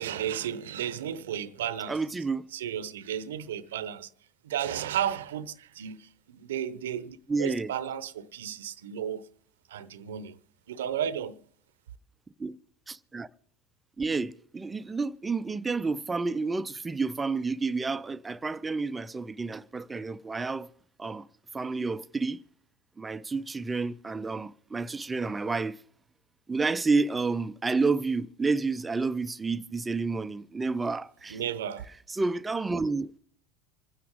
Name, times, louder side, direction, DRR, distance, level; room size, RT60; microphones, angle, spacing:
voice 1, 0.0-2.0 2.5-4.1 4.4-9.3 9.7-10.4 10.7-11.4 31.3-31.9, right 9 dB, 80° right, 0.8 m, -33 dB
voice 2, 1.9-2.5 7.3-7.7 12.4-12.6 12.9-13.3 14.0-20.7 21.0-21.3 21.5-22.4 23.0-25.8 26.5-31.4 32.1-33.2, right 4 dB, 20° right, 0.6 m, -30 dB
26.5 x 10.0 x 3.7 m
hypercardioid pair, 85°, 0 cm